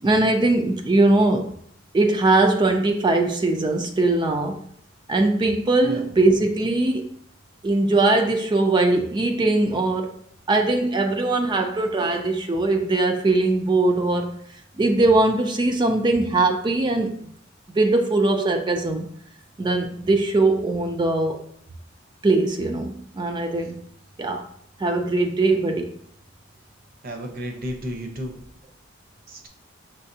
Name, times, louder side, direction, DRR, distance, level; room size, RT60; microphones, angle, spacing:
voice 1, 0.0-1.5 1.9-4.6 5.1-7.0 7.6-10.2 10.5-14.4 14.8-17.1 17.8-19.1 19.6-21.4 22.2-23.8 24.2-24.5 24.8-25.9, right 2 dB, 20° right, 5 dB, 0.3 m, -21 dB
voice 2, 27.0-28.3 29.3-29.5, equal, 45° right, 3 dB, 0.8 m, -32 dB
5.5 x 3.3 x 2.7 m, 0.64 s
head